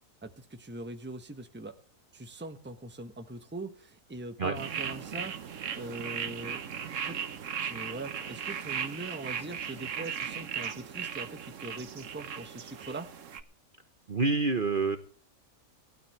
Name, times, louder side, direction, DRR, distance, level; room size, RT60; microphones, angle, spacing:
voice 1, 0.2-1.8 2.1-5.4 5.7-6.6 7.0-7.2 7.6-13.1, right 2 dB, 10° right, 7 dB, 1.1 m, -41 dB
sound 1, 4.5-13.4, right 7 dB, 60° right, 1.3 m, -37 dB
voice 2, 14.1-15.0, right 3 dB, 40° right, 8 dB, 1.2 m, -27 dB
18.5 x 12.5 x 3.3 m, 0.41 s
omnidirectional pair, 1.5 m